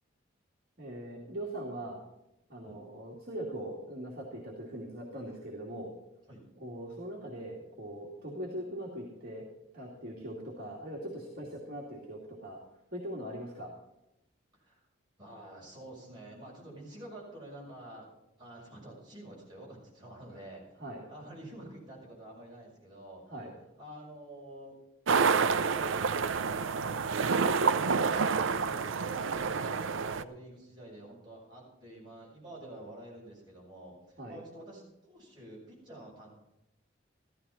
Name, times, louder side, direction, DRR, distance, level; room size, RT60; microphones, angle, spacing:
voice 1, 0.8-2.0 2.5-5.9 6.6-9.5 9.7-12.6 12.9-13.7 20.8-21.0 23.3-23.5 34.2-34.4, right 1 dB, 50° right, -4 dB, 2.4 m, -41 dB
voice 2, 15.2-18.1 18.4-20.7 21.1-23.2 23.8-24.8 25.7-27.2 27.8-36.3, right 1 dB, 20° right, -5 dB, 6.5 m, -49 dB
sound 1, 25.1-30.2, right 5 dB, 80° right, 0.6 m, -28 dB
14.5 x 13.5 x 4.2 m, 0.91 s
head